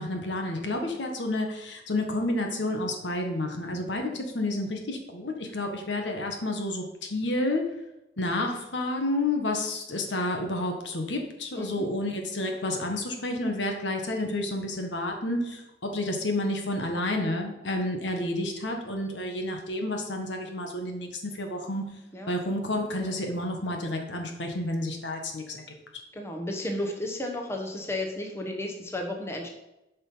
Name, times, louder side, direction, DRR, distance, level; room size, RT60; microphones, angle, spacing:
voice 1, 0.0-7.7 8.2-21.8 22.3-25.6, left 1 dB, 80° left, 3 dB, 1.5 m, -30 dB
voice 2, 11.5-11.9 22.1-22.3 26.1-29.5, left 1 dB, 15° left, 2 dB, 1.2 m, -33 dB
9.0 x 5.5 x 5.7 m, 0.92 s
head